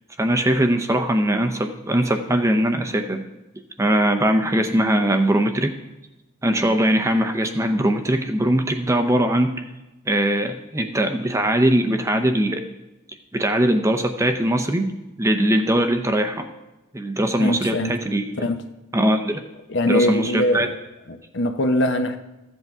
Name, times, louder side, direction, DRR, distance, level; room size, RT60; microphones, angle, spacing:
voice 1, 0.2-3.2 3.8-5.7 6.4-9.5 10.1-12.6 13.3-14.9 15.2-16.5 16.9-18.5 18.9-19.4 19.9-20.7, right 1 dB, 15° right, 0.6 m, -21 dB
voice 2, 17.4-18.0 18.4-18.6 19.7-20.8 21.1-22.2, left 1 dB, 55° left, 0.7 m, -22 dB
14.5 x 8.0 x 3.6 m
head